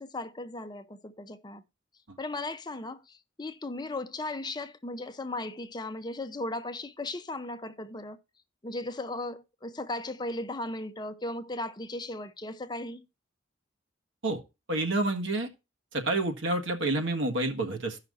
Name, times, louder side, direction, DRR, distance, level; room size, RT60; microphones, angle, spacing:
voice 1, 0.0-1.6 2.2-8.2 8.6-13.1, left 2 dB, 20° left, 0.6 m, -36 dB
voice 2, 14.7-15.5 15.9-18.0, right 2 dB, 85° right, 1.6 m, -28 dB
16.0 x 5.7 x 2.6 m
head